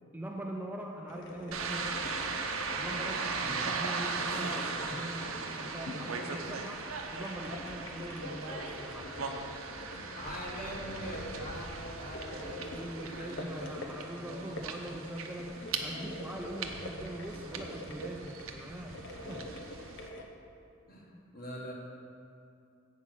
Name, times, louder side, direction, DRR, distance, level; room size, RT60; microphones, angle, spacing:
voice 1, 0.1-2.4 2.7-9.2 12.7-19.0 19.3-19.4, right 1 dB, 10° right, 0 dB, 0.4 m, -42 dB
sound 1, 1.1-20.2, left 1 dB, 60° left, 0.8 m, -45 dB
sound 2, 1.5-20.1, right 4 dB, 75° right, 0.7 m, -39 dB
voice 2, 9.9-13.7 14.2-14.5 15.5-15.7 20.9-21.7, equal, 45° left, -3 dB, 1.7 m, -43 dB
8.3 x 5.5 x 6.4 m, 2.5 s
head